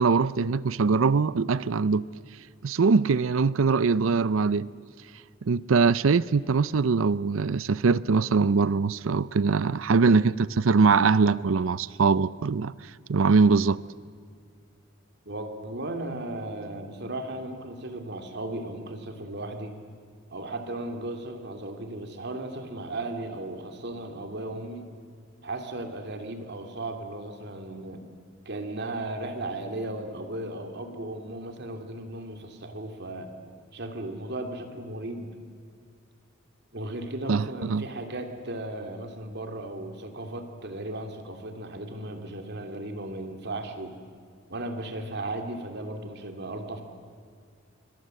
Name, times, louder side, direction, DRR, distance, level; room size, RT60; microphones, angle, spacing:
voice 1, 0.0-2.0 2.6-4.7 5.4-12.7 13.1-13.8 37.3-37.8, right 4 dB, 80° right, 0.5 m, -22 dB
voice 2, 10.0-10.3 15.2-19.7 20.3-24.8 25.4-28.0 28.5-33.3 33.7-35.3 36.7-44.0 44.5-46.8, right 2 dB, 55° right, 2.6 m, -36 dB
26.5 x 24.0 x 7.7 m
head